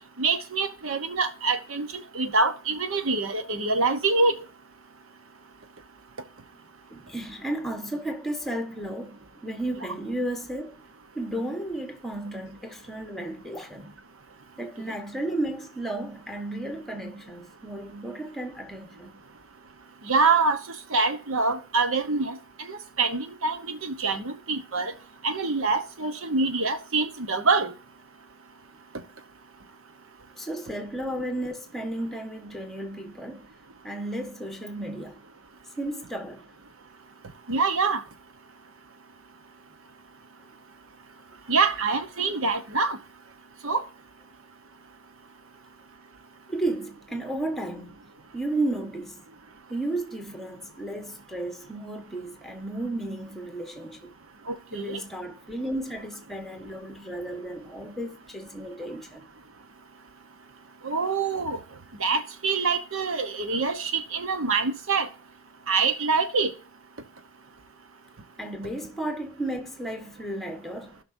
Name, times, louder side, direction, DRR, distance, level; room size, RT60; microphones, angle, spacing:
voice 1, 0.2-4.4 20.0-20.6 20.9-24.9 25.2-27.7 37.5-38.0 41.5-43.0 43.6-43.8 54.5-55.0 60.8-61.6 62.0-65.1 65.7-66.5, right 4 dB, 65° right, 1.1 m, -25 dB
voice 2, 6.9-10.8 11.1-13.9 14.6-19.2 30.3-33.5 33.8-35.2 35.8-36.5 46.5-48.0 48.3-49.2 49.7-54.1 54.7-59.3 68.4-71.0, right 1 dB, ahead, 1.3 m, -33 dB
16.0 x 5.9 x 2.7 m
head